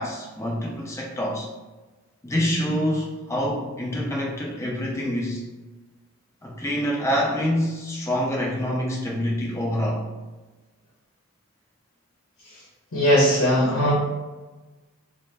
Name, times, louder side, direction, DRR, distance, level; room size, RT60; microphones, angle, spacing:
voice 1, 0.0-1.5 2.2-5.4 6.4-10.0, equal, 15° left, -2 dB, 0.4 m, -26 dB
voice 2, 12.9-13.9, equal, 65° left, -6 dB, 0.8 m, -19 dB
3.2 x 2.0 x 2.5 m, 1.2 s
head